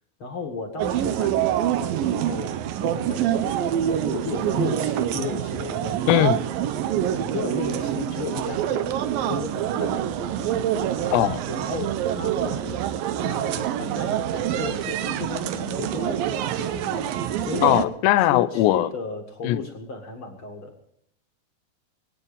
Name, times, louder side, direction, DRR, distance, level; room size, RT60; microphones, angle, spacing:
voice 1, 0.2-3.3 3.6-6.3 7.1-10.6 11.0-12.8 13.2-17.1 17.4-17.9 18.2-20.8, left 5 dB, 40° left, 3 dB, 2.0 m, -35 dB
sound 1, 0.8-17.9, right 10 dB, 75° right, 2.2 m, -26 dB
voice 2, 6.1-6.4 11.1-11.4 17.6-18.9 19.4-19.6, left 14 dB, 85° left, 14 dB, 3.0 m, -19 dB
24.0 x 9.1 x 5.3 m, 0.70 s
omnidirectional pair, 4.9 m